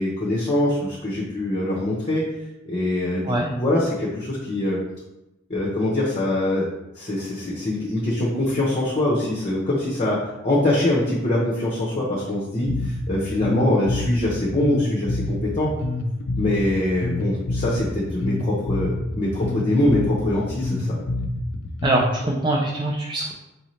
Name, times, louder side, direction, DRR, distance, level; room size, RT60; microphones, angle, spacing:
voice 1, 0.0-2.2 2.7-4.8 5.5-6.6 6.9-10.2 10.4-15.7 16.4-21.0, left 1 dB, 30° left, -5 dB, 0.7 m, -23 dB
Bass guitar, 12.7-22.2, left 2 dB, 60° left, 0.4 m, -27 dB
voice 2, 21.8-23.3, right 1 dB, 20° right, -2 dB, 0.4 m, -23 dB
4.8 x 2.7 x 3.1 m, 0.93 s
head